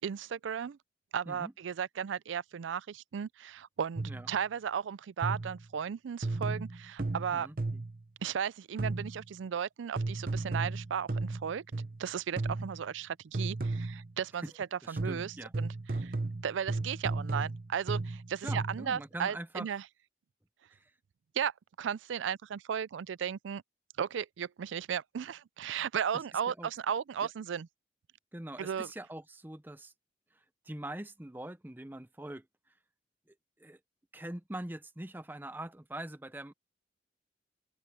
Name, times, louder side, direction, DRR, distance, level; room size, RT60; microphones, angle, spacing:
voice 1, 0.0-0.8 1.1-7.5 8.2-11.6 12.0-14.4 14.7-15.7 16.0-16.1 16.4-19.8 21.3-21.5 21.8-23.6 24.0-27.7 28.6-28.9, right 8 dB, 85° right, 0.4 m, -35 dB
sound 1, 4.0-4.3 5.2-5.7 6.2-8.0 8.8-9.3 10.0-12.0 12.4-12.9 13.3-14.1 15.0-18.9, right 2 dB, 50° right, 0.8 m, -35 dB
voice 2, 7.3-7.8 14.4-14.5 14.8-15.5 18.4-19.7 20.7-20.9 26.1-26.7 27.2-27.3 28.3-29.9 30.3-32.5 33.3-33.8 34.1-36.5, right 1 dB, 10° right, 0.6 m, -43 dB
open air
head